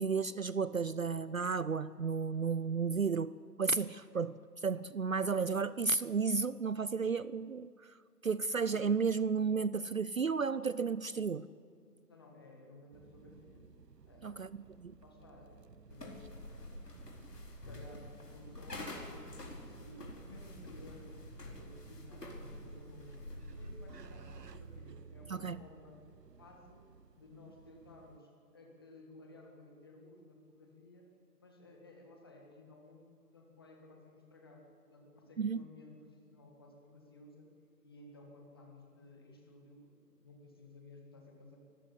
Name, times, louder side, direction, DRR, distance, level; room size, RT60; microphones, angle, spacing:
voice 1, 0.0-3.3 3.6-7.7 8.2-11.5 14.2-14.9 25.3-25.6 35.4-35.6, right 5 dB, 60° right, 18 dB, 0.5 m, -33 dB
voice 2, 12.1-13.7 14.0-14.7 15.0-17.0 17.5-21.1 21.4-26.0 26.4-26.9 27.2-31.1 31.4-37.5 37.8-41.6, left 2 dB, 15° left, 1 dB, 1.6 m, -56 dB
sound 1, 12.9-28.2, right 6 dB, 80° right, 1.0 m, -56 dB
sound 2, 15.9-24.8, left 1 dB, 75° left, 4.4 m, -48 dB
25.0 x 14.0 x 8.1 m, 2.2 s
figure-of-eight pair, 165°, 48 cm